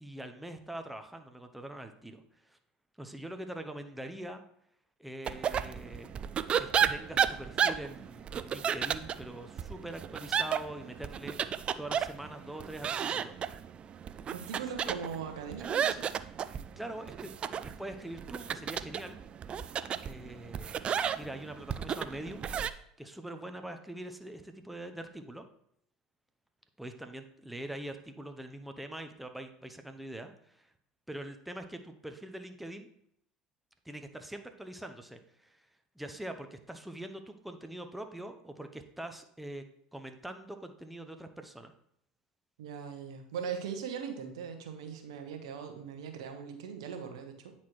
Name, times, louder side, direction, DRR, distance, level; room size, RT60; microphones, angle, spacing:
voice 1, 0.0-2.6 3.0-4.4 5.0-6.1 6.6-11.4 11.8-13.4 16.8-17.3 17.6-19.2 20.1-20.8 21.1-22.5 23.0-25.5 26.8-30.7 31.1-32.9 33.8-35.7 36.0-39.7 39.9-41.7, right 1 dB, 5° right, 6 dB, 0.6 m, -43 dB
sound 1, 5.3-22.7, right 8 dB, 35° right, 0.3 m, -33 dB
voice 2, 14.3-16.1 42.6-47.5, right 7 dB, 80° right, 6 dB, 0.9 m, -40 dB
9.2 x 4.3 x 3.1 m, 0.70 s
hypercardioid pair, 85°, 3 cm